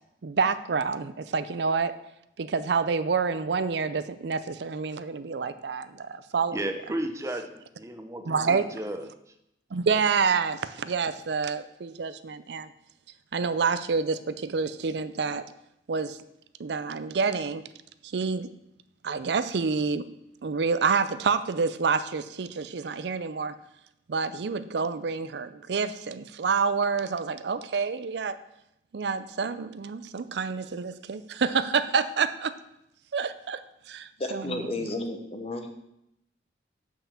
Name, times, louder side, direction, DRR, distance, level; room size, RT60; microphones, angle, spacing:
voice 1, 0.2-1.9 2.4-6.7 8.3-8.7 9.7-12.7 13.3-15.4 15.9-16.2 16.6-17.6 18.1-18.5 19.0-20.1 20.4-23.6 24.1-28.4 28.9-32.5 33.1-33.6 33.9-34.7, right 5 dB, 70° right, 13 dB, 0.5 m, -28 dB
voice 2, 6.5-9.1, right 1 dB, 15° right, 7 dB, 0.7 m, -34 dB
voice 3, 34.2-35.7, left 2 dB, 35° left, 5 dB, 1.0 m, -32 dB
6.9 x 5.6 x 7.1 m, 0.82 s
head